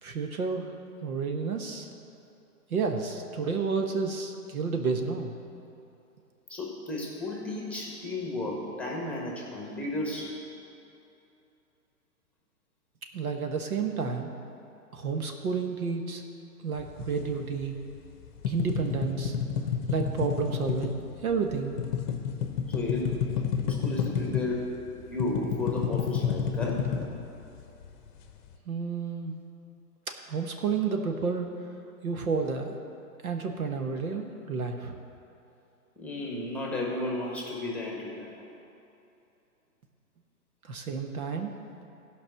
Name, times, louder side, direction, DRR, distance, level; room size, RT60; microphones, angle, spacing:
voice 1, 0.0-0.7 1.0-1.9 2.7-5.4 13.1-14.3 14.9-16.2 16.6-17.7 18.5-19.3 19.9-21.9 28.7-29.3 30.3-31.5 32.0-32.8 33.2-35.0 40.6-41.5, right 5 dB, 65° right, 4 dB, 1.3 m, -30 dB
voice 2, 6.5-10.4 22.7-23.2 23.5-27.0 36.0-38.4, left 2 dB, 5° left, -3 dB, 1.4 m, -33 dB
sound 1, 16.8-18.0 18.3-24.6 24.9-27.9, left 7 dB, 30° left, 0.9 m, -30 dB
15.5 x 5.4 x 6.4 m, 2.8 s
figure-of-eight pair, 125°, 46 cm